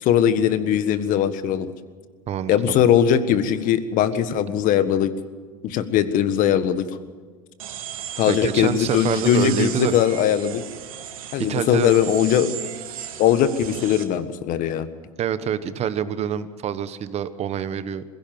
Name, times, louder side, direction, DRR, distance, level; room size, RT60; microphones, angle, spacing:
voice 1, 0.0-1.7 2.5-5.1 5.6-6.9 8.2-10.6 11.3-12.7 13.2-14.9, left 9 dB, 50° left, 12 dB, 1.6 m, -20 dB
voice 2, 2.3-2.9 8.3-9.9 11.5-11.9 15.2-18.0, right 9 dB, 40° right, 13 dB, 1.2 m, -26 dB
sound 1, 7.6-14.0, right 9 dB, 85° right, 2.0 m, -36 dB
21.5 x 16.5 x 7.7 m, 1.4 s
hypercardioid pair, 100°, 17 cm